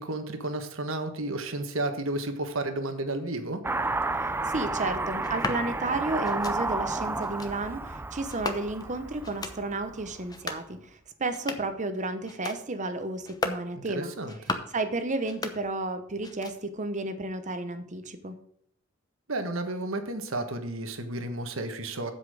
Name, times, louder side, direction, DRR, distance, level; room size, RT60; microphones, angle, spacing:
voice 1, 0.0-3.6 13.9-14.6 19.3-22.1, right 2 dB, 70° right, 7 dB, 1.4 m, -32 dB
Car passing by / Accelerating revving vroom, 3.6-10.2, right 3 dB, 10° right, 0.4 m, -32 dB
voice 2, 4.2-14.1 14.7-18.4, right 2 dB, 35° right, 9 dB, 0.9 m, -32 dB
sound 1, 5.2-5.6 6.2-6.6 7.2-7.5 8.3-8.9 9.2-9.6 10.2-10.7 11.2-11.8 12.2-12.6 13.2-13.7 14.2-14.8 15.2-15.9 16.2-16.8, left 2 dB, 20° left, 0.9 m, -36 dB
8.1 x 7.4 x 5.0 m, 0.69 s
head